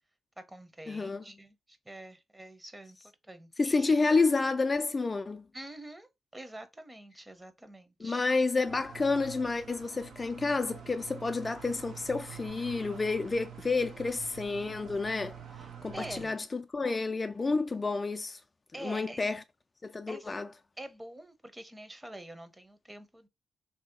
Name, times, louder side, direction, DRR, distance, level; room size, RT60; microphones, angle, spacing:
voice 1, 0.4-3.0 3.2-4.0 5.5-8.3 15.6-16.4 18.7-19.2 20.1-20.3 20.8-23.3, right 1 dB, 20° right, 0.8 m, -46 dB
voice 2, 0.9-1.2 3.6-5.4 8.0-15.4 15.8-18.4 18.8-19.4 19.8-20.5, left 3 dB, 35° left, 0.3 m, -30 dB
sound 1, 8.6-16.3, right 8 dB, 80° right, 0.8 m, -47 dB
3.1 x 2.8 x 3.6 m
supercardioid pair, 55°, 0 cm